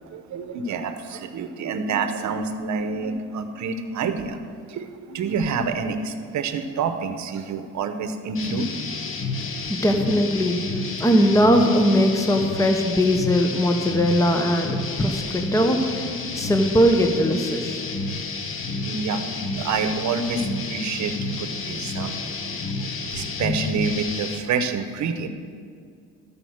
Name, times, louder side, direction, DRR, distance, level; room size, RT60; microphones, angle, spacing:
voice 1, 0.0-4.4 4.7-8.7 18.8-19.3 19.6-22.1 23.1-25.3, right 5 dB, 70° right, 8 dB, 0.9 m, -27 dB
sound 1, 8.3-24.4, left 3 dB, 45° left, 1.0 m, -30 dB
voice 2, 9.7-10.6 11.0-16.1 16.3-17.9, equal, 10° left, 5 dB, 0.9 m, -20 dB
13.5 x 5.1 x 6.4 m, 2.2 s
cardioid pair, 90°, 30 cm